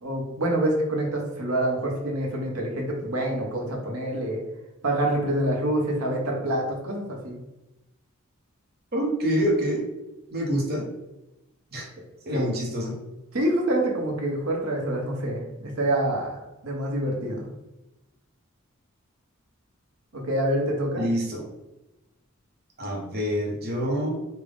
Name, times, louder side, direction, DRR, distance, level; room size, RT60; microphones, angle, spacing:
voice 1, 0.0-4.4 4.8-7.4 12.3-12.5 13.3-17.4 20.1-21.1, right 1 dB, 90° right, -1 dB, 1.0 m, -26 dB
voice 2, 8.9-9.9 10.3-10.9 11.7-11.9 12.3-13.0 21.0-21.4 22.8-24.2, equal, 45° right, 0 dB, 0.9 m, -26 dB
3.7 x 2.3 x 3.5 m, 0.97 s
head